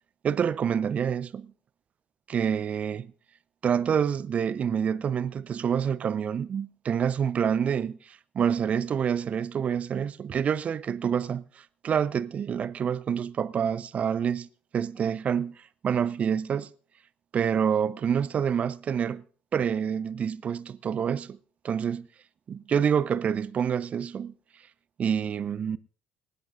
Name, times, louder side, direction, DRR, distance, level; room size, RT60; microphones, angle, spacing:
voice 1, 0.2-1.5 2.3-3.1 3.6-14.5 14.7-15.5 15.8-16.7 17.3-19.2 19.5-21.4 21.6-22.1 22.5-24.3 25.0-25.8, right 7 dB, 40° right, 0.7 m, -27 dB
26.0 x 10.5 x 2.5 m
figure-of-eight pair, 55°, 3 cm